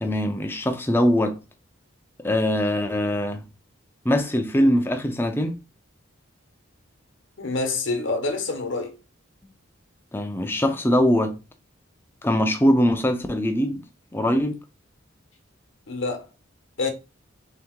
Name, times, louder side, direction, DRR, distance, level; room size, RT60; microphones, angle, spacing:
voice 1, 0.0-1.4 2.2-3.4 4.0-5.5 10.1-11.4 12.2-13.8 14.1-14.6, equal, 10° left, 0.4 m, -22 dB
voice 2, 7.4-8.9 15.9-16.2 16.8-16.9, left 3 dB, 65° left, 0.9 m, -26 dB
3.4 x 2.9 x 3.6 m
head